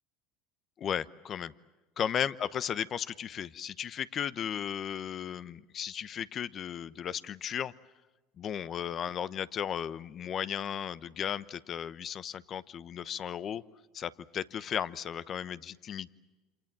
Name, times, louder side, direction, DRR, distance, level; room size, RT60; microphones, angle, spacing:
voice 1, 0.8-1.5 2.0-7.7 8.4-13.6 13.9-16.1, left 9 dB, 45° left, 16 dB, 0.9 m, -35 dB
28.0 x 27.0 x 7.6 m, 1.2 s
hypercardioid pair, 85°, 0 cm